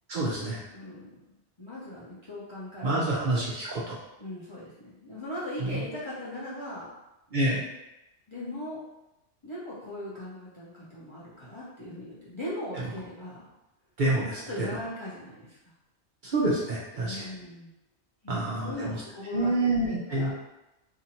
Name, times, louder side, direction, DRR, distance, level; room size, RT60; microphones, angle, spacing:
voice 1, 0.1-0.6 2.8-4.0 7.3-7.6 14.0-14.4 16.3-17.3 18.3-19.0 19.3-20.3, right 2 dB, 55° right, -5 dB, 0.6 m, -27 dB
voice 2, 0.7-3.3 4.2-6.9 8.3-8.8 9.4-13.4 14.5-15.6 17.0-17.7 18.2-20.3, left 1 dB, 35° left, -9 dB, 0.5 m, -39 dB
2.8 x 2.5 x 2.7 m, 0.94 s
omnidirectional pair, 1.2 m